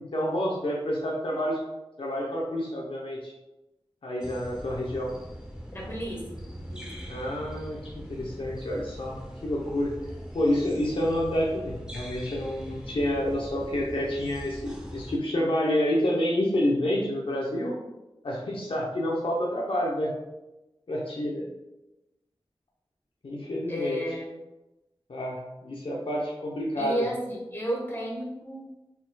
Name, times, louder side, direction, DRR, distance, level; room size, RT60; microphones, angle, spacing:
voice 1, 0.1-1.6 2.0-3.3 4.0-5.1 7.1-9.9 10.3-17.8 18.2-20.1 20.9-21.5 23.2-24.0 25.1-27.0, left 1 dB, 60° left, -4 dB, 0.7 m, -28 dB
sound 1, 4.2-15.2, equal, 10° right, 0.8 m, -41 dB
voice 2, 5.7-6.9 23.7-24.3 26.8-28.6, equal, 20° left, -2 dB, 1.2 m, -33 dB
4.2 x 4.0 x 2.2 m, 1.0 s
wide cardioid pair, 65°, 10 cm